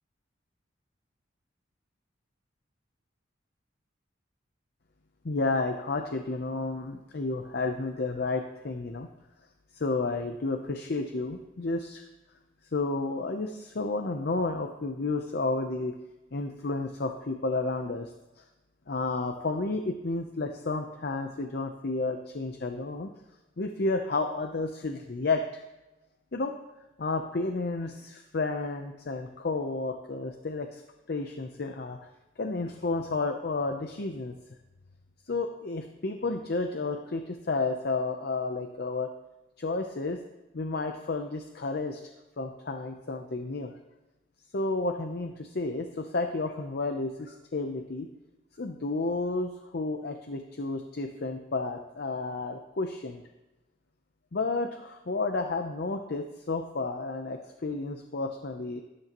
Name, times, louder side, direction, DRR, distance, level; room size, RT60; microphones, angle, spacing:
voice 1, 5.2-9.1 9.7-12.1 12.7-16.0 16.3-18.1 18.4-18.5 18.9-23.1 23.6-25.6 26.3-26.5 27.0-30.8 31.1-32.0 32.4-34.3 35.3-39.1 39.6-40.2 40.5-42.0 42.4-43.7 44.5-48.1 48.6-53.2 54.3-58.8, left 3 dB, 55° left, 5 dB, 0.6 m, -31 dB
12.5 x 10.5 x 3.0 m, 1.0 s
head